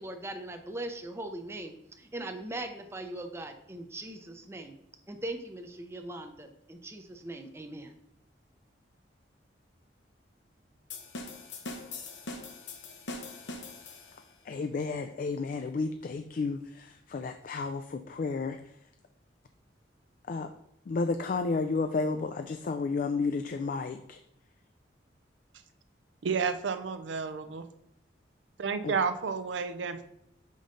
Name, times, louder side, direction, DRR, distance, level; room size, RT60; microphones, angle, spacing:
voice 1, 0.0-4.8 5.1-7.9, right 1 dB, 15° right, 5 dB, 0.5 m, -40 dB
sound 1, 10.9-14.3, left 3 dB, 80° left, 0.9 m, -42 dB
voice 2, 14.4-18.8 20.3-20.5 20.9-24.2 28.8-28.9, left 4 dB, 45° left, 7 dB, 0.3 m, -32 dB
voice 3, 26.2-27.7 28.6-30.1, right 5 dB, 85° right, 10 dB, 0.5 m, -31 dB
5.4 x 5.1 x 3.8 m, 0.78 s
head